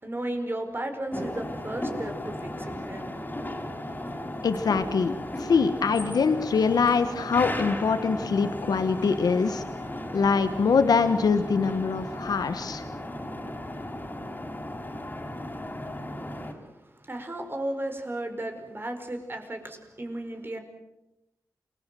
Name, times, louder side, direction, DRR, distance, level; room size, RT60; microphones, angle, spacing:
voice 1, 0.0-3.2 16.3-16.7 17.0-20.6, right 1 dB, 35° right, 5 dB, 5.0 m, -34 dB
sound 1, 1.1-16.5, left 1 dB, 30° left, 4.8 m, -35 dB
voice 2, 4.4-9.6 10.1-12.8, left 5 dB, 85° left, 10 dB, 1.4 m, -24 dB
28.5 x 19.5 x 7.7 m, 0.92 s
cardioid pair, 55°, 7 cm